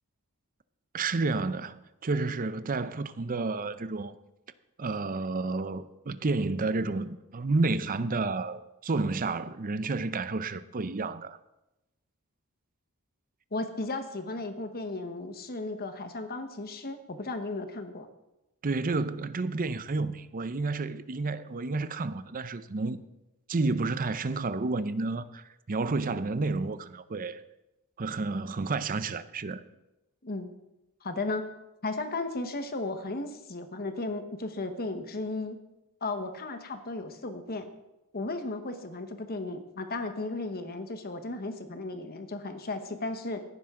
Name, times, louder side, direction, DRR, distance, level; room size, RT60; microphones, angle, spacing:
voice 1, 0.9-4.2 4.8-11.4 18.6-23.0 23.5-27.4 28.0-29.6, right 3 dB, 40° right, 0.6 m, -30 dB
voice 2, 13.5-18.1 30.2-30.5 31.0-31.5 31.8-35.6 36.0-37.7 38.1-43.4, left 2 dB, 45° left, 1.2 m, -35 dB
17.0 x 10.5 x 3.7 m
head